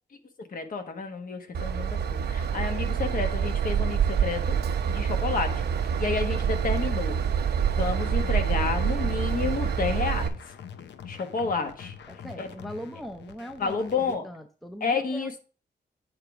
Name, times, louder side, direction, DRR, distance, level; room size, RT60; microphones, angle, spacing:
voice 1, 0.5-4.6 4.9-5.6 6.0-7.2 7.7-10.3 11.1-11.9 12.4-12.5 13.6-14.2 14.8-15.4, left 4 dB, 50° left, 1.3 m, -30 dB
Train / Engine, 1.5-10.3, right 7 dB, 65° right, 0.7 m, -26 dB
sound 1, 7.8-14.2, left 8 dB, 75° left, 0.7 m, -44 dB
voice 2, 12.1-15.4, equal, ahead, 0.6 m, -40 dB
8.6 x 3.5 x 4.9 m
cardioid pair, 105°, 18 cm